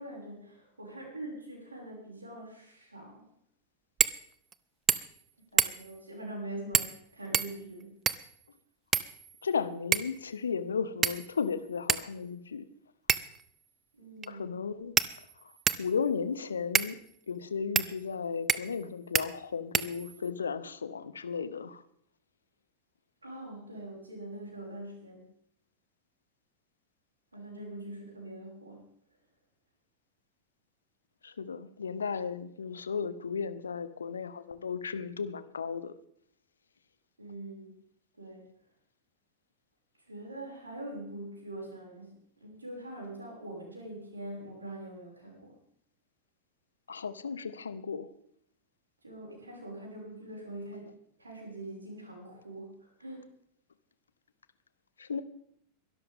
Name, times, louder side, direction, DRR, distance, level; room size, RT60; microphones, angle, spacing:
voice 1, 0.0-3.3 5.5-7.9 14.0-14.5 23.2-25.3 27.3-28.8 37.2-37.7 38.2-38.4 40.1-45.5 49.0-53.2, right 1 dB, 80° right, -2 dB, 6.0 m, -43 dB
sound 1, 4.0-4.2 4.5-4.6 4.9-5.2 5.6-6.0 6.7-7.0 7.3-8.3 8.9-9.5 9.9-10.2 11.0-11.4 11.9-12.0 13.1-13.4 14.2-14.3 15.0-15.9 16.7-16.9 17.7-17.9 18.5-18.8 19.1-19.3 19.7-20.3, right 8 dB, 25° right, 0.6 m, -28 dB
voice 2, 9.4-12.7 14.3-15.0 15.4-15.5 15.8-17.0 17.3-21.8 31.2-36.0 46.9-48.1 55.0-55.2, left 6 dB, 70° left, 15 dB, 0.8 m, -35 dB
22.5 x 12.5 x 3.6 m, 0.70 s
figure-of-eight pair, 90°, 0 cm